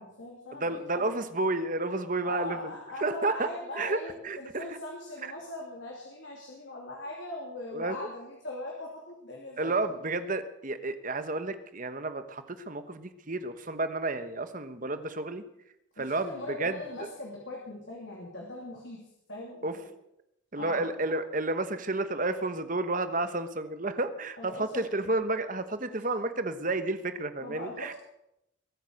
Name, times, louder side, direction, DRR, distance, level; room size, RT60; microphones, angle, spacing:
voice 1, 0.0-1.1 2.2-9.7 16.0-19.0 19.3-19.9 20.6-20.9 24.4-24.9 27.4-27.9, left 2 dB, 60° left, -2 dB, 3.0 m, -40 dB
voice 2, 0.5-2.7 3.0-4.0 4.2-4.8 7.7-8.0 9.6-15.5 16.0-17.1 19.6-19.8 20.5-27.9, right 2 dB, 40° right, 10 dB, 1.2 m, -31 dB
22.0 x 9.0 x 6.5 m, 0.82 s
head